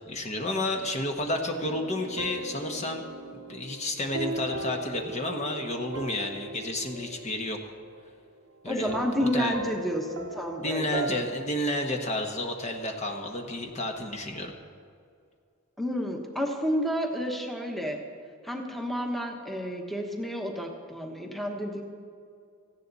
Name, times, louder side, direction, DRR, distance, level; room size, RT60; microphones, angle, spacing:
voice 1, 0.1-3.0 3.3-7.6 8.6-9.6 10.6-14.5, left 1 dB, 35° left, 3 dB, 1.2 m, -31 dB
sound 1, 1.6-8.3 8.9-11.4, right 2 dB, 85° right, 1.1 m, -38 dB
voice 2, 8.7-11.1 15.8-18.0 18.4-21.8, equal, ahead, 1 dB, 1.2 m, -30 dB
17.5 x 14.5 x 4.1 m, 2.3 s
head